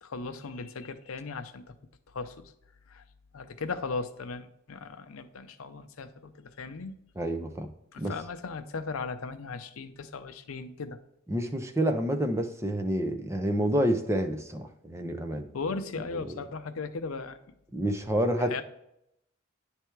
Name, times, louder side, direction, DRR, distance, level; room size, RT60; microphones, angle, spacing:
voice 1, 0.0-1.7 2.1-2.5 2.9-3.0 3.3-7.0 7.9-11.0 15.5-17.4 18.4-18.6, left 4 dB, 85° left, 10 dB, 0.6 m, -37 dB
voice 2, 7.2-7.7 8.0-8.1 11.3-15.5 16.1-16.2 17.7-18.6, right 1 dB, 15° right, 5 dB, 0.6 m, -28 dB
9.8 x 3.4 x 4.5 m, 0.79 s
head